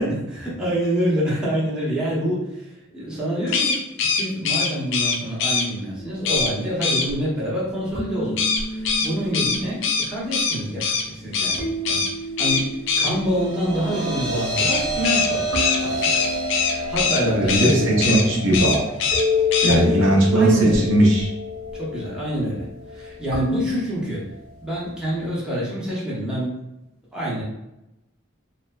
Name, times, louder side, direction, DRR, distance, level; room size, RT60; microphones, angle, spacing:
voice 1, 0.0-12.0 12.4-15.5 15.8-16.2 16.5-18.2 19.6-20.9 21.7-24.2 24.6-26.5 27.1-27.4, equal, 5° right, -8 dB, 0.8 m, -26 dB
sound 1, 3.5-5.7 6.2-6.5 6.8-7.1 8.4-11.0 11.3-11.6 11.8-12.1 12.4-13.1 14.6-17.2 17.5-17.7 18.0-18.2 18.5-19.2 19.5-19.8, left 5 dB, 65° left, 0.4 m, -22 dB
sound 2, 6.0-23.7, left 3 dB, 90° right, 1.0 m, -31 dB
sound 3, 12.9-25.3, right 1 dB, 40° right, 0.8 m, -32 dB
voice 2, 17.2-18.9 19.6-21.3, right 1 dB, 65° right, -1 dB, 0.5 m, -18 dB
3.2 x 2.1 x 2.3 m, 0.91 s
head